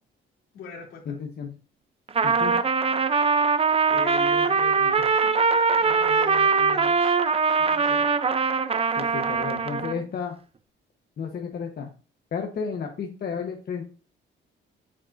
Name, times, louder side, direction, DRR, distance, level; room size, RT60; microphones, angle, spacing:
voice 1, 0.5-1.2 3.9-7.2 7.6-8.1, left 3 dB, 80° left, -1 dB, 3.1 m, -40 dB
voice 2, 1.1-1.5 2.2-2.5 9.0-10.3 11.2-11.9 12.3-13.8, left 6 dB, 50° left, 3 dB, 1.2 m, -32 dB
Trumpet, 2.1-10.0, right 5 dB, 30° right, 0.6 m, -22 dB
8.6 x 7.3 x 2.7 m, 0.36 s
cardioid pair, 90°, 20 cm